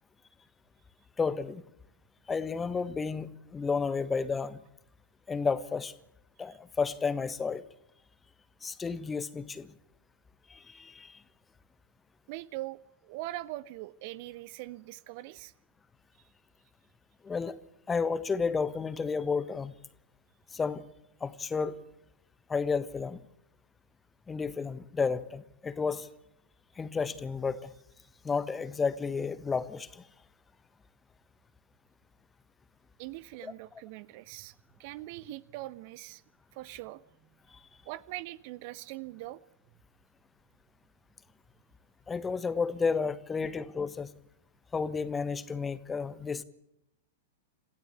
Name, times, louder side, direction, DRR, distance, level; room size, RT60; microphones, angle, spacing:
voice 1, 1.2-1.6 2.3-4.6 5.3-5.9 6.4-7.6 8.6-9.7 10.5-11.1 17.2-17.5 17.9-19.7 20.5-20.8 21.2-21.8 22.5-23.2 24.3-26.1 26.8-27.7 28.2-30.0 33.4-33.5 42.1-44.1 44.7-46.4, left 5 dB, 15° left, 15 dB, 1.4 m, -31 dB
voice 2, 12.3-15.5 33.0-34.5 34.8-36.2 36.5-37.0 37.9-39.4, right 17 dB, 45° right, 18 dB, 0.9 m, -42 dB
28.0 x 16.5 x 8.4 m, 0.80 s
figure-of-eight pair, 100°, 0 cm